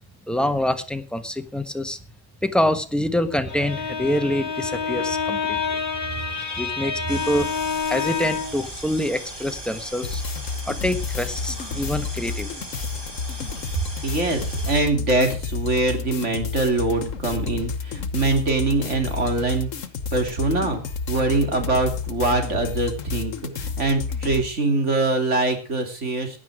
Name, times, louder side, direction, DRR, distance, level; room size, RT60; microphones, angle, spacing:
voice 1, 0.3-2.0 2.4-5.8 6.6-7.5 7.9-10.2 10.7-12.6, left 1 dB, ahead, 9 dB, 1.2 m, -25 dB
Bowed string instrument, 3.3-8.7, left 6 dB, 40° left, 2.2 m, -28 dB
sound 1, 7.1-14.8, equal, 20° right, 4.1 m, -38 dB
sound 2, 10.0-24.5, left 5 dB, 75° left, 1.5 m, -30 dB
voice 2, 14.0-19.7 20.1-20.8 21.1-26.4, right 2 dB, 60° right, 5 dB, 3.4 m, -23 dB
16.0 x 11.0 x 4.9 m, 0.33 s
omnidirectional pair, 1.4 m